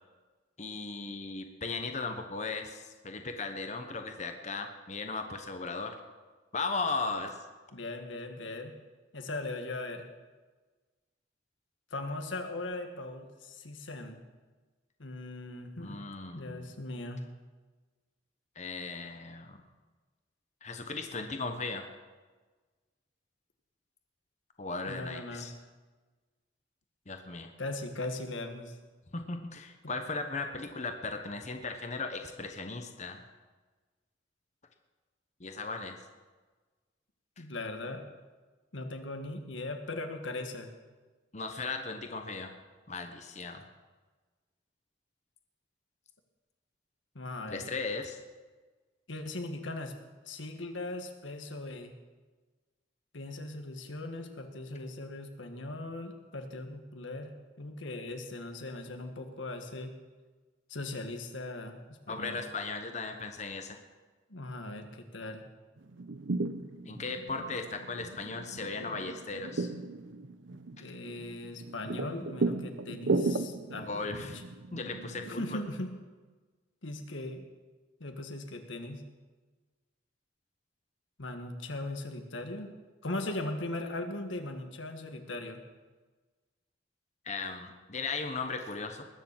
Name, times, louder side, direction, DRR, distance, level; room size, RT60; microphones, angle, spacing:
voice 1, 0.6-6.0 6.5-7.4 15.8-16.7 18.6-19.6 20.6-21.9 24.6-25.5 27.1-27.5 29.1-33.2 35.4-35.9 41.3-42.5 42.9-43.6 47.5-48.2 62.1-63.8 66.8-69.7 73.8-74.4 74.7-75.6 87.2-89.0, left 3 dB, 40° left, 6 dB, 1.0 m, -37 dB
voice 2, 7.7-8.7 9.1-10.0 11.9-14.2 15.0-16.0 16.3-17.2 24.8-25.5 27.6-28.8 37.4-38.0 38.7-40.7 47.1-47.7 49.1-49.9 50.3-51.9 53.1-57.3 57.6-59.9 60.7-61.8 62.1-62.4 64.3-65.4 70.8-74.4 75.3-75.9 76.8-77.4 78.0-79.0 81.2-82.7 83.0-85.6, left 2 dB, 90° left, 5 dB, 1.6 m, -39 dB
sound 1, 65.8-75.6, right 3 dB, 85° right, 0.8 m, -36 dB
20.5 x 6.9 x 7.4 m, 1.3 s
head